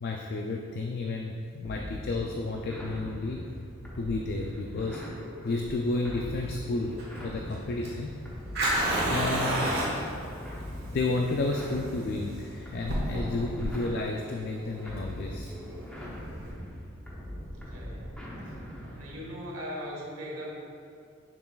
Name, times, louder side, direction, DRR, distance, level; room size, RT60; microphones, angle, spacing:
voice 1, 0.0-3.5 3.9-5.0 5.4-7.0 7.2-8.2 9.1-9.7 10.9-15.5, left 2 dB, 45° left, 2 dB, 0.3 m, -31 dB
sound 1, 1.6-19.3, equal, 5° left, 0.8 m, -41 dB
Fire, 5.5-16.5, right 1 dB, 50° right, 1.3 m, -32 dB
voice 2, 17.5-18.5 18.8-20.5, equal, 85° right, -4 dB, 1.3 m, -40 dB
7.0 x 6.1 x 2.3 m, 2.4 s
head